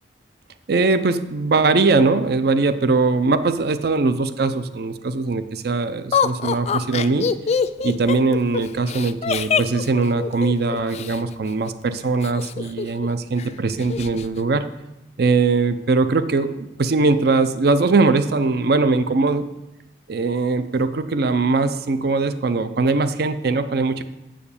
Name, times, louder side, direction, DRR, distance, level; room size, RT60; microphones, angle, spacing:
voice 1, 0.7-7.3 7.8-14.6 15.2-19.5 20.1-24.0, right 3 dB, 60° right, 11 dB, 0.5 m, -21 dB
Laughter, 6.1-11.2 12.2-13.1 13.4-13.5 13.8-14.3, left 6 dB, 35° left, 0.3 m, -24 dB
7.7 x 5.0 x 6.8 m, 0.93 s
head